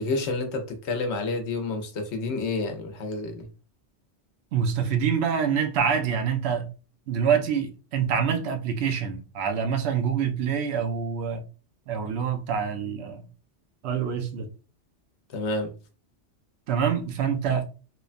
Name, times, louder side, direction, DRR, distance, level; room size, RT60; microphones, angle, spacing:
voice 1, 0.0-3.5 15.3-15.7, left 3 dB, 70° left, 0.9 m, -29 dB
voice 2, 4.5-6.7 7.1-11.4 11.9-13.2 13.8-14.5 16.7-17.7, right 7 dB, 70° right, 0.8 m, -26 dB
3.0 x 2.1 x 2.4 m
omnidirectional pair, 1.2 m